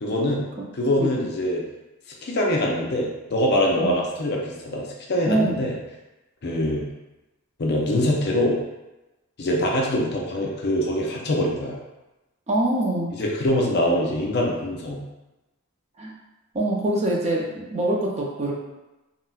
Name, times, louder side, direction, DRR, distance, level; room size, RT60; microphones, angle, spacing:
voice 1, 0.0-0.5 0.7-1.6 2.2-5.8 6.4-6.9 7.6-8.6 9.4-11.8 13.1-15.0, left 1 dB, 50° left, -1 dB, 0.5 m, -24 dB
voice 2, 12.5-13.1 16.0-16.1 16.5-18.6, right 1 dB, 30° right, -2 dB, 0.4 m, -24 dB
3.8 x 2.1 x 2.3 m, 1.0 s
head